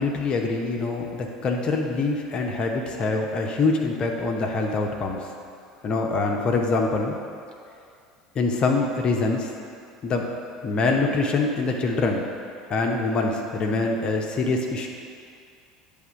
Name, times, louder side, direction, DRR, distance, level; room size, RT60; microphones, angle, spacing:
voice 1, 0.0-5.2 5.8-7.2 8.3-9.5 10.0-10.3 10.6-12.3 12.7-14.9, left 3 dB, 35° left, 1 dB, 0.8 m, -24 dB
9.5 x 3.5 x 5.0 m, 2.4 s
figure-of-eight pair, 70°, 3 cm